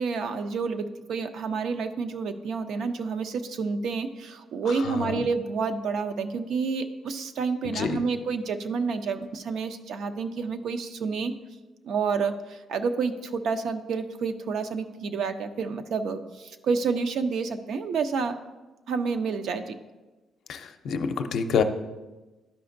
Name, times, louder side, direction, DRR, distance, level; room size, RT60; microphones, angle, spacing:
voice 1, 0.0-11.3 11.8-18.4 18.9-19.8, right 5 dB, 75° right, 8 dB, 0.5 m, -29 dB
voice 2, 20.5-21.6, left 6 dB, 70° left, 7 dB, 0.5 m, -27 dB
12.0 x 5.0 x 2.6 m, 1.2 s
cardioid pair, 90°, 0 cm